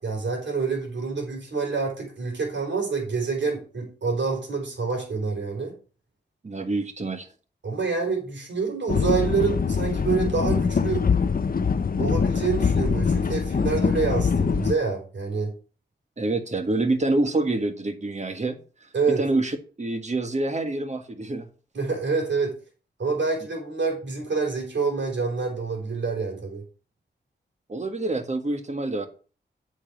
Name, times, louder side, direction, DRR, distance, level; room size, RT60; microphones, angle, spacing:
voice 1, 0.0-5.8 7.6-11.1 12.0-15.5 18.9-19.2 21.7-22.6 23.0-26.6, right 4 dB, 75° right, 1 dB, 4.2 m, -27 dB
voice 2, 6.4-7.3 16.2-18.6 19.1-21.5 27.7-29.1, right 2 dB, 40° right, 7 dB, 1.7 m, -26 dB
sound 1, 8.9-14.7, left 5 dB, 50° left, 0.7 m, -23 dB
8.5 x 5.4 x 6.0 m, 0.37 s
cardioid pair, 70°, 19 cm